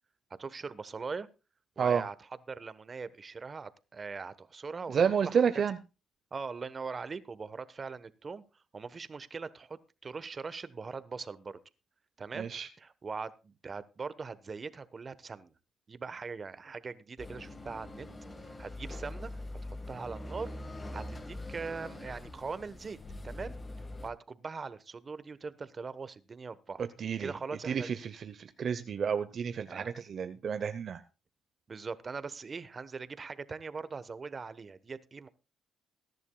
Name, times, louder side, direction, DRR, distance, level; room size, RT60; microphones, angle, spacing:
voice 1, 0.4-1.3 1.8-2.1 2.5-5.0 5.2-5.4 6.3-11.6 12.2-12.5 12.8-15.5 15.9-18.1 18.4-19.4 19.9-20.5 20.9-23.0 23.2-23.6 24.0-26.8 27.2-27.9 29.7-29.9 31.7-35.3, right 4 dB, 35° right, 15 dB, 1.1 m, -41 dB
voice 2, 4.9-5.8 12.4-12.7 27.0-27.3 27.6-31.0, right 7 dB, 55° right, 10 dB, 0.8 m, -30 dB
sound 1, 17.2-24.1, left 1 dB, 25° left, 1.7 m, -43 dB
21.0 x 11.0 x 2.3 m, 0.30 s
cardioid pair, 90°, 0 cm